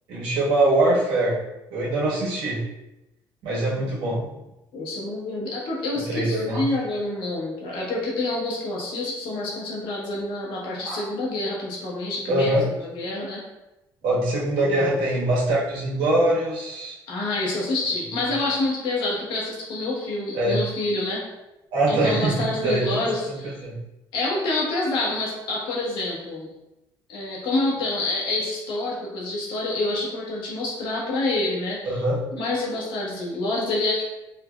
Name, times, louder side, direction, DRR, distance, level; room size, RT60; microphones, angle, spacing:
voice 1, 0.1-1.4 1.7-2.6 3.4-4.2 6.1-6.7 10.8-11.1 12.3-12.6 14.0-17.0 20.3-20.6 21.7-23.4 23.6-23.8 31.8-32.2, right 1 dB, 85° right, -6 dB, 1.2 m, -23 dB
voice 2, 3.8-4.4 4.7-12.6 12.8-13.4 14.6-14.9 17.1-21.2 21.9-23.6 24.1-26.5 27.1-32.0 32.3-34.0, left 2 dB, 75° left, -4 dB, 1.2 m, -27 dB
4.1 x 2.7 x 2.2 m, 0.95 s
cardioid pair, 115°, 8 cm